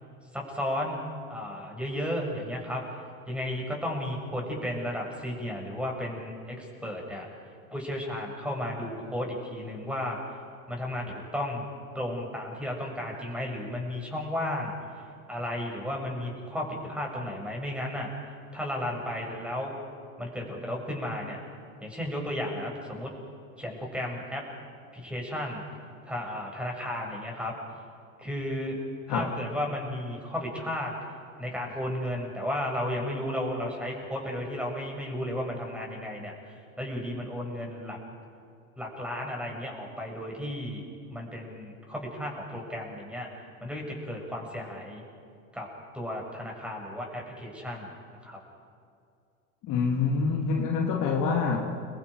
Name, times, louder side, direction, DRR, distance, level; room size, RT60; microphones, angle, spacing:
voice 1, 0.3-1.0 1.3-2.8 3.3-7.3 7.7-10.2 10.7-11.6 11.9-14.7 15.3-18.1 18.5-19.7 20.2-21.4 21.8-23.1 23.6-24.4 24.9-25.6 26.1-27.5 28.2-28.8 29.1-30.9 31.4-38.0 38.8-40.8 41.1-43.3 43.6-45.0 45.5-45.7 45.9-47.9 48.2-48.4, left 1 dB, 5° right, 0 dB, 7.0 m, -33 dB
voice 2, 49.6-51.9, left 5 dB, 45° left, 0 dB, 3.2 m, -26 dB
30.0 x 24.0 x 5.2 m, 2.4 s
hypercardioid pair, 100°, 44 cm